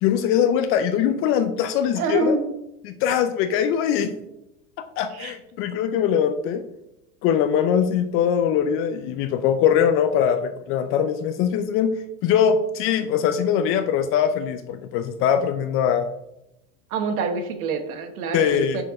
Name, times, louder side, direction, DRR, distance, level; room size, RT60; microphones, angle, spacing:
voice 1, 0.0-2.4 2.8-4.1 5.0-6.6 7.2-12.0 12.2-16.1 18.3-18.8, left 8 dB, 35° left, 9 dB, 0.4 m, -22 dB
voice 2, 1.9-2.4 5.1-5.3 16.9-18.8, right 4 dB, 85° right, 7 dB, 1.3 m, -26 dB
6.4 x 4.5 x 4.8 m, 0.88 s
supercardioid pair, 130°, 42 cm